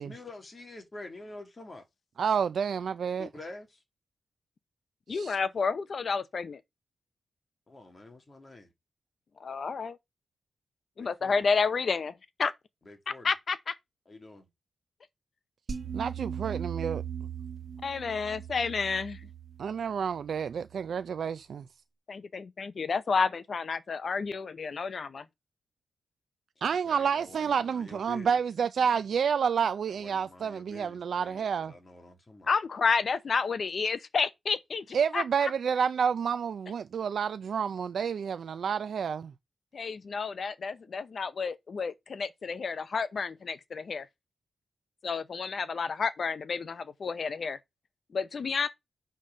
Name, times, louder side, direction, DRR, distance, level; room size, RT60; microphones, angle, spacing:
voice 1, 0.0-1.8 3.2-3.8 7.7-8.7 11.0-11.4 12.9-13.3 14.1-14.5 26.8-28.3 29.9-32.5, left 2 dB, 25° left, 2.2 m, -47 dB
voice 2, 2.2-3.3 5.1-5.4 15.9-17.0 19.6-21.6 26.6-31.7 34.9-39.3, right 7 dB, 60° right, 0.4 m, -29 dB
voice 3, 5.1-6.6 9.4-10.0 11.0-12.1 12.4-12.5 13.1-13.7 17.8-19.2 22.1-25.2 32.5-35.5 39.7-44.1 45.0-47.6 48.1-48.7, left 5 dB, 45° left, 0.7 m, -30 dB
sound 1, 15.7-20.9, right 8 dB, 45° right, 2.1 m, -39 dB
8.0 x 4.0 x 6.3 m
wide cardioid pair, 160°, 0 cm